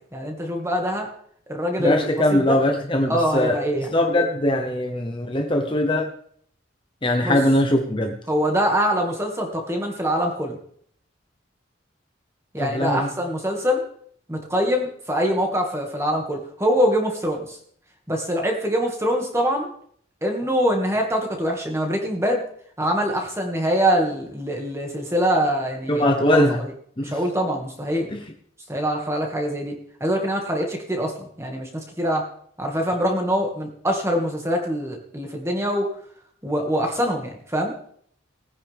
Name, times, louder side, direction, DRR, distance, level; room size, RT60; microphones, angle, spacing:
voice 1, 0.1-1.1 1.5-2.6 3.1-3.9 7.2-7.4 8.3-10.6 12.5-13.9 14.3-17.6 18.1-19.7 20.2-22.4 22.8-26.4 27.0-28.1 28.7-29.8 30.0-32.2 32.6-35.9 36.4-37.7, equal, 15° right, 2 dB, 2.1 m, -24 dB
voice 2, 1.8-6.1 7.0-8.1 12.6-13.1 25.9-26.6 27.0-27.2 28.1-28.2, left 1 dB, 25° left, 4 dB, 1.0 m, -21 dB
19.5 x 9.8 x 3.6 m, 0.63 s
head